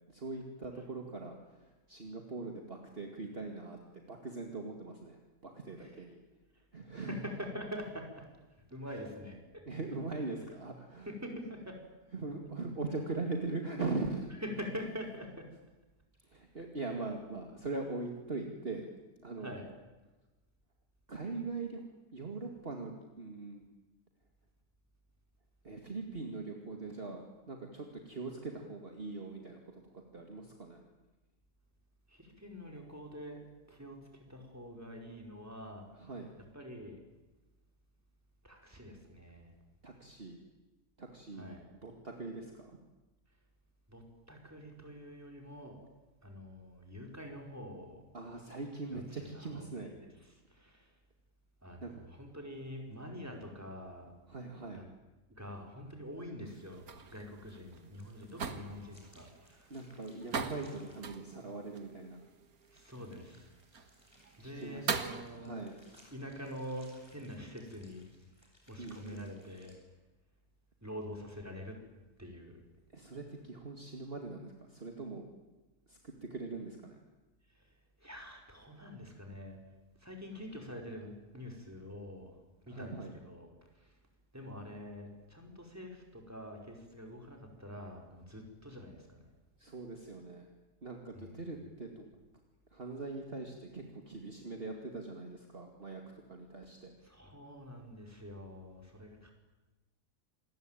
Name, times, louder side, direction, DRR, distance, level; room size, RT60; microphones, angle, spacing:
voice 1, 0.1-6.2 6.7-7.2 8.9-9.0 9.7-11.1 12.1-14.3 16.2-18.9 19.2-19.5 21.1-21.8 22.1-23.6 25.6-29.8 30.1-30.8 35.9-36.3 39.8-40.4 41.0-42.8 48.1-49.9 51.8-52.0 54.3-54.8 59.7-62.2 64.4-65.1 65.3-65.8 68.8-69.3 72.9-75.3 75.9-77.0 82.7-83.1 89.6-90.5 90.8-92.0 92.7-96.0 96.3-96.9, right 3 dB, 35° right, 3 dB, 2.5 m, -41 dB
voice 2, 7.0-8.2 8.7-9.4 11.1-11.8 14.4-15.5 19.4-19.7 32.1-33.4 33.7-36.1 36.5-37.0 38.4-39.5 41.4-41.7 43.9-45.8 46.2-48.0 48.9-49.0 49.3-50.9 51.6-54.1 54.7-54.8 55.3-59.7 62.7-63.5 64.4-65.6 66.1-68.1 68.7-69.8 70.8-71.8 72.2-72.6 77.5-77.7 78.0-79.6 80.0-82.4 82.7-83.5 83.7-84.0 84.3-89.2 91.1-91.4 97.0-99.3, equal, 10° right, 2 dB, 5.0 m, -45 dB
sound 1, 56.5-65.2, right 6 dB, 70° right, 2.0 m, -42 dB
sound 2, 57.7-61.0 62.6-69.7, equal, 15° left, 7.0 m, -65 dB
27.5 x 21.0 x 9.1 m, 1.1 s
omnidirectional pair, 1.6 m